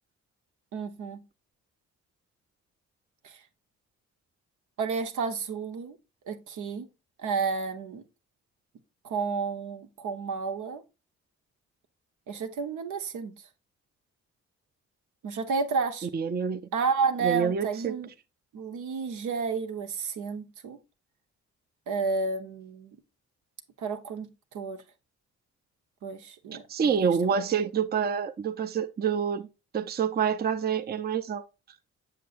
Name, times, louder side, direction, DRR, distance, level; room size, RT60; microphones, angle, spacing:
voice 1, 0.7-1.2 3.2-3.4 4.8-6.0 6.2-6.9 7.2-8.0 9.0-10.8 12.3-13.3 15.2-16.1 16.7-18.1 18.5-20.8 21.9-23.0 23.8-24.8 26.0-27.1, right 5 dB, 85° right, 1.0 m, -31 dB
voice 2, 16.1-16.6 17.2-18.0 26.7-29.5 29.7-31.4, right 7 dB, 35° right, 0.5 m, -27 dB
7.4 x 6.7 x 2.5 m
cardioid pair, 90°, 30 cm